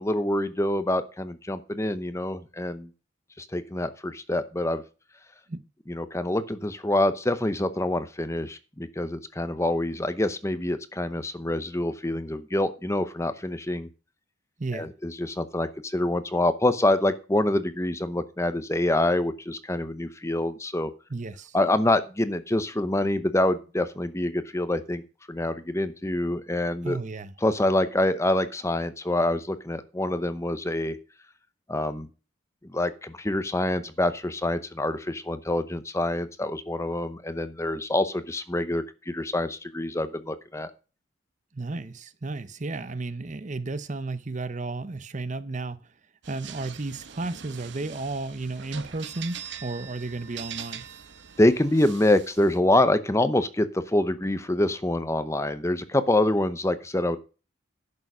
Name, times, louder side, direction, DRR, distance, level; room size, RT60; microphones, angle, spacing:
voice 1, 0.0-2.9 3.4-4.8 5.9-13.9 14.7-20.9 21.5-25.0 25.3-27.0 27.4-31.0 31.7-32.1 32.7-40.7 51.4-57.2, left 1 dB, 15° left, 0.7 m, -26 dB
voice 2, 14.6-14.9 21.1-21.6 26.8-27.3 41.5-45.9 46.3-50.9, right 3 dB, 35° right, 0.7 m, -33 dB
sound 1, 46.2-52.6, right 8 dB, 60° right, 0.9 m, -42 dB
11.0 x 6.8 x 6.1 m
head